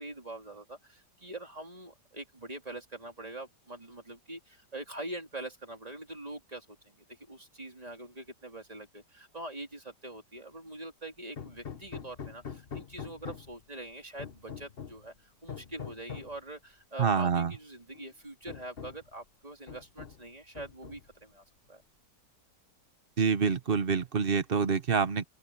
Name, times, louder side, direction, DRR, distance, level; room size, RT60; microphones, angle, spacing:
voice 1, 0.0-21.8, right 1 dB, 20° right, 3.4 m, -44 dB
Hammer, 11.4-13.6 14.2-15.1 15.5-16.4 17.4-17.5 17.9-18.1 18.5-19.1 19.7-20.3 20.6-21.2, left 7 dB, 35° left, 1.3 m, -44 dB
voice 2, 17.0-17.5 23.2-25.2, right 5 dB, 40° right, 1.0 m, -26 dB
open air
omnidirectional pair, 1.8 m